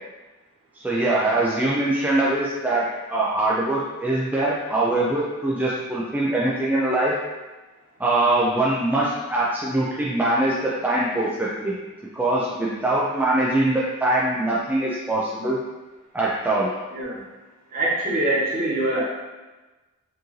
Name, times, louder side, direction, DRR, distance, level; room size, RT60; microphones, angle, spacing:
voice 1, 0.7-7.2 8.0-11.8 12.1-15.6 16.1-16.7, right 2 dB, 10° right, -6 dB, 0.4 m, -23 dB
voice 2, 4.4-4.8 12.5-12.6 16.9-17.2 17.7-19.0, right 1 dB, 40° right, -7 dB, 1.2 m, -25 dB
4.6 x 2.6 x 3.1 m, 1.2 s
head